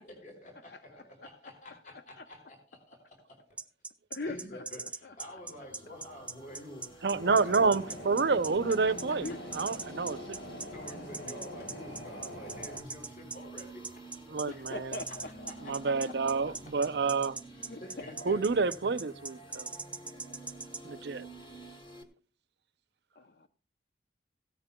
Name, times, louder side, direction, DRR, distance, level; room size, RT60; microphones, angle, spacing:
voice 1, 0.0-3.4 4.3-8.0 8.4-9.4 10.7-13.9 14.5-14.8 15.1-16.1 17.8-18.9, left 1 dB, 45° left, 4.6 m, -49 dB
sound 1, 3.6-20.8, right 4 dB, 5° right, 0.4 m, -40 dB
voice 2, 4.1-4.6 5.0-5.1 9.2-9.4 9.8-9.9 14.5-15.9 16.5-16.6 17.5-18.0 23.2-23.5, left 2 dB, 65° left, 0.7 m, -42 dB
sound 2, 5.1-22.0, right 2 dB, 25° left, 1.9 m, -50 dB
voice 3, 7.0-9.3 9.6-10.4 14.3-15.0 15.6-17.3 18.3-19.7 20.8-21.3, right 4 dB, 75° right, 0.6 m, -28 dB
sound 3, 7.1-12.8, equal, 85° left, 7.4 m, -45 dB
16.5 x 13.5 x 2.3 m
head